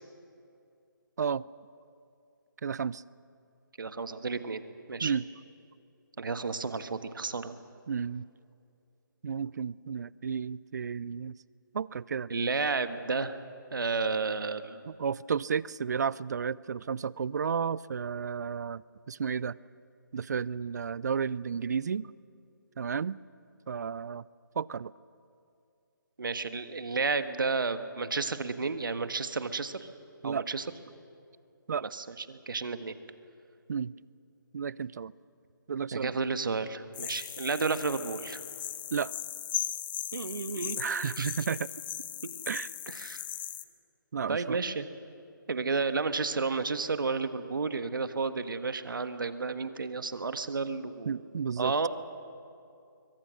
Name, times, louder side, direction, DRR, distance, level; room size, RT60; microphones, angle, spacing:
voice 1, 2.6-3.0 5.0-5.3 7.9-8.3 9.2-11.4 11.7-12.3 14.9-19.6 20.1-22.1 22.8-23.2 23.7-24.2 24.6-24.9 30.2-30.4 31.7-31.8 33.7-33.9 34.5-35.1 35.7-36.2 38.9-39.1 40.8-41.7 42.5-42.7 44.1-44.6 51.0-51.7, right 6 dB, 55° right, 22 dB, 0.5 m, -32 dB
voice 2, 3.8-4.6 4.9-5.1 6.2-7.6 12.3-13.4 13.7-14.8 26.2-29.9 30.2-30.7 31.8-32.9 35.9-38.4 40.1-41.3 42.2-42.3 42.9-43.2 44.3-44.9 45.5-51.2 51.6-51.9, right 4 dB, 70° right, 10 dB, 1.5 m, -32 dB
sound 1, 36.9-43.6, left 11 dB, 25° left, 0.8 m, -38 dB
26.5 x 23.5 x 6.4 m, 2.5 s
figure-of-eight pair, 155°, 11 cm